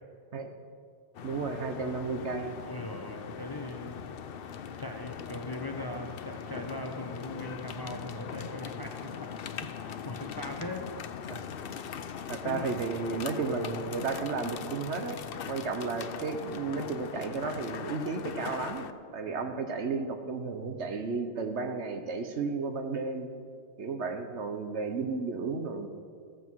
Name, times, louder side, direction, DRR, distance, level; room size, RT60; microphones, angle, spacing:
sound 1, 1.1-18.9, left 7 dB, 65° left, 0.8 m, -40 dB
voice 1, 1.2-2.5 11.3-11.4 12.3-15.2 15.5-18.9 19.1-23.3 23.8-25.9, right 4 dB, 85° right, 6 dB, 1.4 m, -33 dB
voice 2, 2.7-4.0 4.8-11.0 12.4-12.7 19.3-19.7, left 1 dB, 25° left, 4 dB, 0.7 m, -40 dB
14.5 x 14.5 x 4.7 m, 2.3 s
omnidirectional pair, 1.1 m